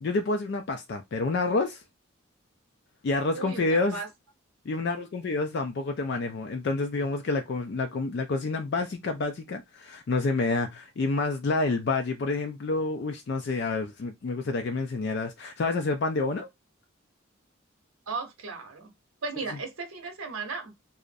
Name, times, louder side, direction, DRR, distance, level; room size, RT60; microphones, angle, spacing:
voice 1, 0.0-1.8 3.0-4.0 4.7-16.5, left 3 dB, 55° left, 0.3 m, -28 dB
voice 2, 3.3-4.1 18.1-18.9 19.2-20.7, right 4 dB, 90° right, 0.8 m, -36 dB
2.4 x 2.0 x 2.5 m
head